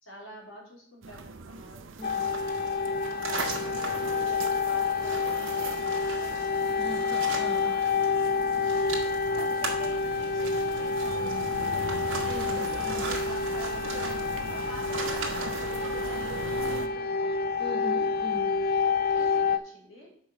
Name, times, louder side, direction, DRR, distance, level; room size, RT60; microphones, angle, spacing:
voice 1, 0.0-1.9 3.2-6.7 8.0-12.2 13.2-16.2 16.6-17.3 19.1-20.1, equal, 80° left, -3 dB, 3.5 m, -48 dB
sound 1, 1.0-16.9, right 4 dB, 70° right, 0.6 m, -40 dB
sound 2, 1.9-8.1 8.3-15.8, right 3 dB, 90° right, 1.7 m, -39 dB
sound 3, 2.0-19.6, left 5 dB, 45° left, 0.4 m, -28 dB
voice 2, 6.8-7.7 12.2-13.1 17.6-18.5, right 1 dB, ahead, -1 dB, 1.3 m, -40 dB
6.1 x 5.3 x 6.2 m, 0.63 s
head